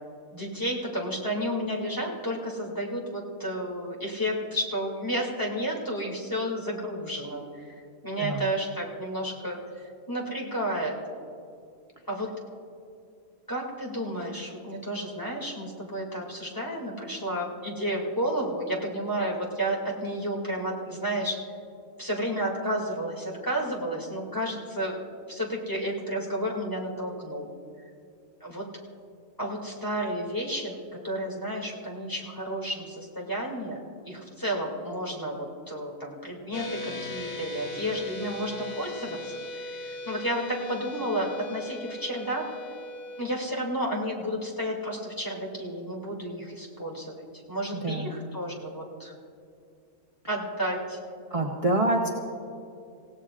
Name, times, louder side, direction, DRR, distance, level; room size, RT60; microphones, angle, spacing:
voice 1, 0.3-11.0 12.1-12.3 13.5-21.4 22.0-25.0 25.3-27.5 28.4-28.7 29.4-42.5 43.2-49.1 50.3-51.0, equal, 15° left, -2 dB, 2.6 m, -32 dB
sound 1, 36.5-43.2, left 1 dB, 70° left, 1.9 m, -38 dB
voice 2, 51.3-52.1, right 1 dB, 25° right, 0 dB, 1.0 m, -25 dB
27.0 x 17.0 x 2.5 m, 2.5 s
omnidirectional pair, 1.5 m